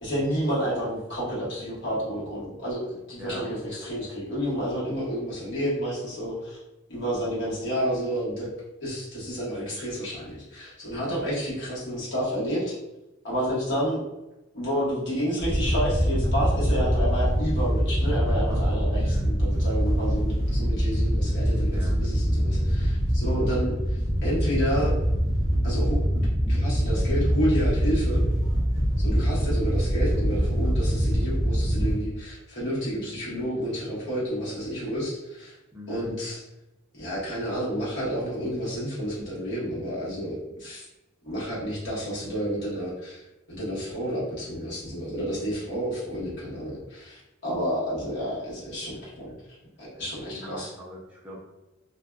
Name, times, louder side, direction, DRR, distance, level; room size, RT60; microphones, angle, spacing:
voice 1, 0.0-6.6 6.9-8.5 8.8-12.7 13.2-14.0 14.5-24.9 25.6-28.2 29.0-35.5 35.9-36.4 37.0-40.8 41.2-43.2 43.5-49.3 49.8-50.7, equal, 60° left, -7 dB, 1.1 m, -30 dB
Wind / Boat Water vehicle, 15.4-31.9, equal, 20° left, 0.7 m, -24 dB
voice 2, 18.9-19.3 21.7-22.0 35.7-36.1 48.9-49.0 49.9-50.0 50.3-51.4, left 1 dB, 5° right, -5 dB, 0.4 m, -42 dB
2.5 x 2.1 x 2.2 m, 0.98 s
head